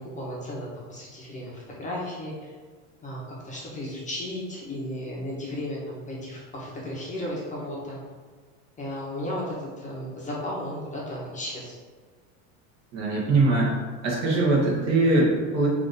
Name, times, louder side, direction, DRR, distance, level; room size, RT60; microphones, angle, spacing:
voice 1, 0.0-2.5 3.0-8.0 8.8-11.8, left 1 dB, 20° left, -5 dB, 0.7 m, -34 dB
voice 2, 12.9-13.7 14.0-15.7, right 2 dB, 45° right, -4 dB, 1.3 m, -22 dB
3.3 x 2.6 x 4.0 m, 1.5 s
supercardioid pair, 125°, 36 cm